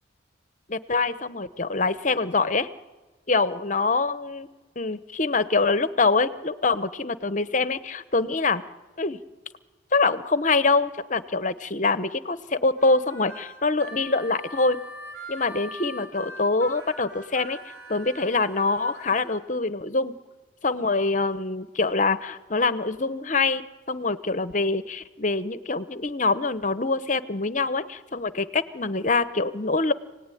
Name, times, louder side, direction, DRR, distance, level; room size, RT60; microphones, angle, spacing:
voice 1, 0.7-2.7 3.3-4.5 4.8-8.6 9.0-9.2 9.9-14.8 15.3-17.6 17.9-20.1 20.6-29.9, left 3 dB, 40° left, 13 dB, 1.0 m, -24 dB
Harmonica, 12.8-19.3, equal, 90° right, 6.2 m, -42 dB
28.5 x 18.5 x 10.0 m, 1.2 s
head